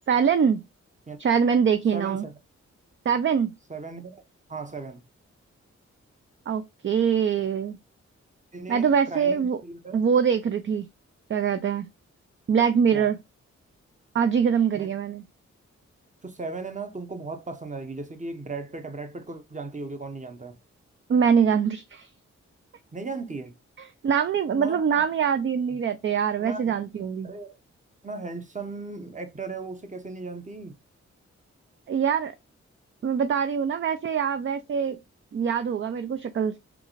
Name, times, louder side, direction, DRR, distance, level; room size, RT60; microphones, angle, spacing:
voice 1, 0.1-0.6 1.2-2.2 3.1-3.5 6.5-7.8 8.7-9.6 9.9-10.9 11.3-11.9 12.5-13.2 14.1-15.2 21.1-22.1 23.8-27.3 31.9-32.3 33.0-35.0 35.3-36.6, right 7 dB, 45° right, 0.4 m, -23 dB
voice 2, 1.9-2.4 3.7-4.2 4.5-5.0 8.5-10.0 12.9-13.1 14.7-14.9 16.2-20.6 22.9-23.5 24.5-25.1 25.7-25.8 26.4-26.7 27.2-27.6 28.0-30.8, right 3 dB, 25° right, 0.8 m, -37 dB
3.7 x 2.4 x 3.0 m
cardioid pair, 45°, 29 cm